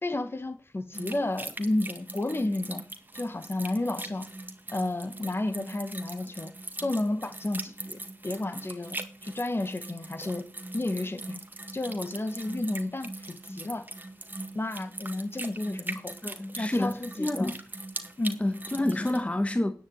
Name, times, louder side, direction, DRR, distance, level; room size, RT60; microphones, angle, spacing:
voice 1, 0.0-2.8 3.1-4.3 4.7-6.5 6.8-10.5 10.7-11.4 11.7-13.9 14.6-16.2 16.6-17.5 18.2-18.4 19.0-19.1, left 2 dB, 35° left, 1.9 m, -32 dB
sound 1, 0.9-19.2, right 2 dB, 30° right, 2.1 m, -41 dB
voice 2, 16.2-17.6 18.4-19.7, left 1 dB, 20° left, 1.5 m, -28 dB
10.0 x 9.4 x 8.3 m
wide cardioid pair, 65°, 7 cm